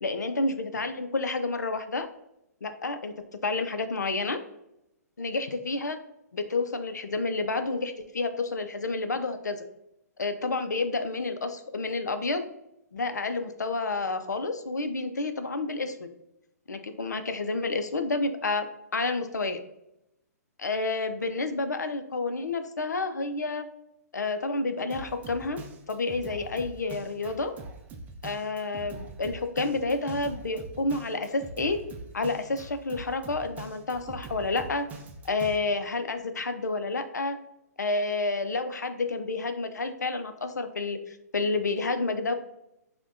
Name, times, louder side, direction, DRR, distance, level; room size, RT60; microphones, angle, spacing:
voice 1, 0.0-2.1 2.6-3.1 3.4-4.4 5.2-6.0 6.3-9.6 10.2-12.5 12.9-16.1 16.7-18.7 18.9-19.6 20.6-23.7 24.1-25.6 25.9-27.5 28.2-31.8 32.1-34.8 35.2-37.4 37.8-42.3, left 3 dB, 85° left, 9 dB, 0.5 m, -29 dB
Drum kit, 24.9-35.6, right 3 dB, 15° right, 0.4 m, -43 dB
5.7 x 2.2 x 2.5 m, 0.82 s
hypercardioid pair, 125°, 9 cm